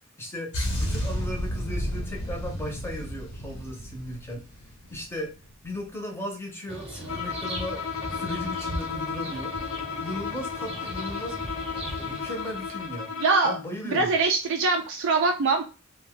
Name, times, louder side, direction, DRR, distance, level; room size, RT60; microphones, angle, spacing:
voice 1, 0.2-4.4 4.9-5.3 5.6-7.8 8.1-9.5 10.0-11.4 12.0-13.1 13.4-14.1, left 1 dB, 10° left, 1 dB, 0.6 m, -36 dB
sound 1, 0.5-5.1 5.4-5.6, equal, 85° left, 1.1 m, -32 dB
sound 2, 6.7-13.0, right 1 dB, 30° right, 0.8 m, -38 dB
Bowed string instrument, 7.1-13.7, left 6 dB, 60° left, 0.4 m, -34 dB
voice 2, 13.2-13.6 13.9-15.6, right 4 dB, 55° right, 3 dB, 0.3 m, -23 dB
2.5 x 2.2 x 3.4 m, 0.33 s
head